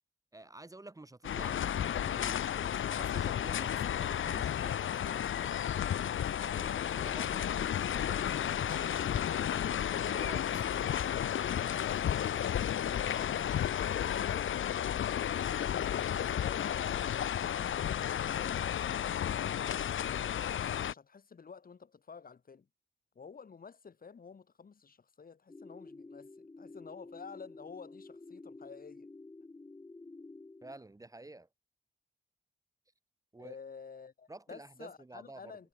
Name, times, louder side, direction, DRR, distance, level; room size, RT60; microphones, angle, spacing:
voice 1, 0.3-5.7 6.4-9.4 9.9-10.5 30.6-31.5 33.3-33.5 34.3-35.6, right 2 dB, 15° right, 2.5 m, -50 dB
sound 1, 1.2-20.9, left 10 dB, 85° left, 1.0 m, -32 dB
sound 2, 2.6-18.4, right 7 dB, 65° right, 2.9 m, -57 dB
voice 2, 7.0-7.6 11.9-14.6 15.3-20.3 20.9-22.7 23.1-29.1 33.4-35.7, left 5 dB, 45° left, 4.9 m, -51 dB
sound 3, 25.5-30.8, left 3 dB, 20° left, 1.2 m, -51 dB
wide cardioid pair, 135°, 20 cm